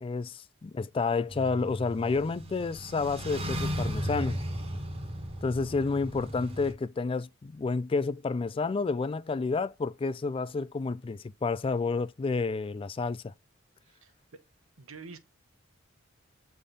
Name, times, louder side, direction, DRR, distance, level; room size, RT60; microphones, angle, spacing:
voice 1, 0.0-4.4 5.4-13.3, left 4 dB, 25° left, 0.3 m, -30 dB
sound 1, 1.3-6.7, equal, 30° right, 1.3 m, -36 dB
voice 2, 14.8-15.2, right 4 dB, 90° right, 1.1 m, -46 dB
8.4 x 3.5 x 3.8 m
head